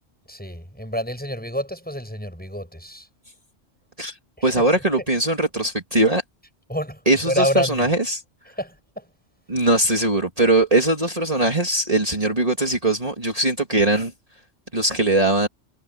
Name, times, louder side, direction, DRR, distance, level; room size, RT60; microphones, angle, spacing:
voice 1, 0.3-3.1 4.4-4.6 6.7-7.9 8.5-9.1, equal, 5° left, 7.4 m, -28 dB
voice 2, 4.4-6.2 7.1-8.2 9.5-14.1 14.7-15.5, right 2 dB, 30° right, 3.0 m, -20 dB
omnidirectional pair, 1.2 m